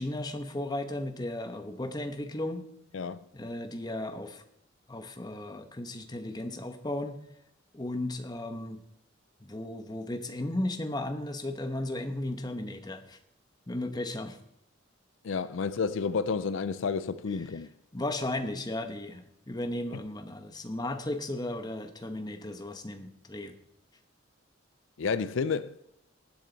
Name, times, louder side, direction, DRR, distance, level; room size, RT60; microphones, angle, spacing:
voice 1, 0.0-2.7 3.3-4.4 4.9-7.2 7.7-8.8 9.4-13.2 13.7-14.4 17.9-23.5, left 1 dB, 20° left, 1.0 m, -35 dB
voice 2, 2.9-3.3 15.2-17.7 25.0-25.8, left 5 dB, 75° left, 0.5 m, -30 dB
19.0 x 7.5 x 4.0 m
head